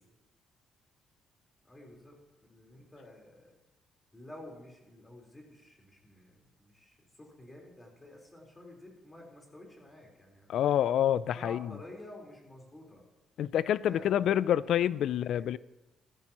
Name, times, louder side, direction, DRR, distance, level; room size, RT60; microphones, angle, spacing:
voice 1, 1.6-2.2 2.5-3.6 4.1-10.8 11.3-13.1 13.9-14.4 15.3-15.5, left 1 dB, 20° left, 4.1 m, -50 dB
voice 2, 10.5-11.7 13.4-15.6, left 10 dB, 75° left, 0.3 m, -27 dB
14.5 x 13.5 x 3.0 m
cardioid pair, 90°, 0 cm